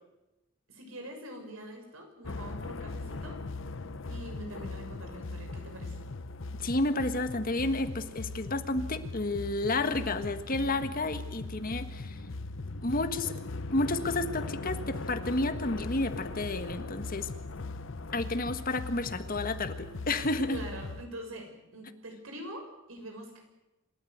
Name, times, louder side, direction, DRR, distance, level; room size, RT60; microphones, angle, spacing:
voice 1, 0.7-3.4 4.1-6.0 20.5-23.4, right 1 dB, 80° right, 3 dB, 6.6 m, -44 dB
sound 1, 2.2-21.1, left 3 dB, 65° left, 0.9 m, -39 dB
voice 2, 6.5-12.2 12.8-13.4 13.7-17.3 18.1-20.6, left 2 dB, 45° left, 9 dB, 1.6 m, -31 dB
27.5 x 14.0 x 9.4 m, 1.0 s
head